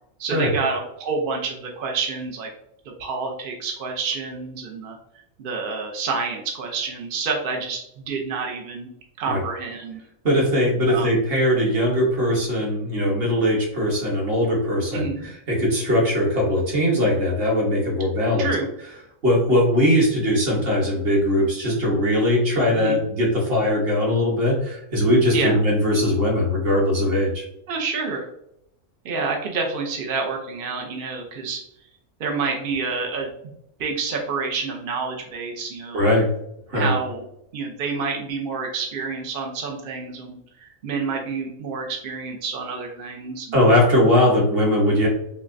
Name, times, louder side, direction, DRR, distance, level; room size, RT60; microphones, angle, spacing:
voice 1, 0.2-2.5 3.0-5.0 5.4-8.9 9.2-10.0 10.9-11.1 14.9-15.3 18.4-18.7 22.7-23.0 25.3-25.6 27.7-28.3 29.0-31.6 32.2-33.3 33.8-36.2 36.7-37.2 37.5-43.6, right 4 dB, 65° right, 1 dB, 0.5 m, -28 dB
voice 2, 10.2-18.5 19.2-27.4 35.9-36.3 36.7-36.9 43.5-45.1, left 1 dB, 45° right, -2 dB, 1.2 m, -20 dB
5.5 x 2.1 x 2.5 m, 0.77 s
omnidirectional pair, 1.5 m